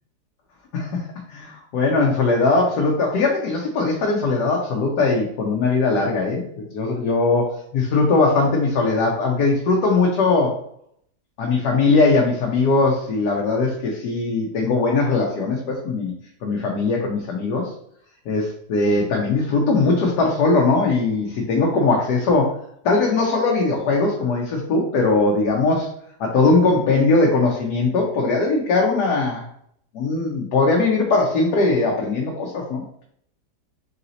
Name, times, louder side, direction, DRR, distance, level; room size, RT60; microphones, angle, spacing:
voice 1, 1.3-10.6 11.4-16.1 16.4-17.7 18.3-22.6 22.8-25.9 26.2-29.4 29.9-33.0, left 3 dB, 70° left, -1 dB, 1.3 m, -20 dB
4.0 x 2.8 x 3.9 m, 0.68 s
omnidirectional pair, 1.8 m